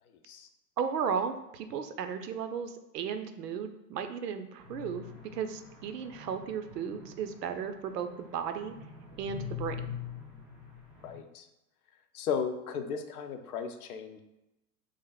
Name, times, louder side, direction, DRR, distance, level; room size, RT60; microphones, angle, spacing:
voice 1, 0.8-5.0 5.3-8.7 9.2-9.8, right 7 dB, 80° right, 8 dB, 0.6 m, -35 dB
sound 1, 4.6-11.2, left 7 dB, 5° right, 0.3 m, -44 dB
voice 2, 11.0-11.5 12.1-14.2, left 6 dB, 70° left, 7 dB, 0.6 m, -35 dB
3.3 x 2.5 x 3.8 m, 0.94 s
hypercardioid pair, 100°, 47 cm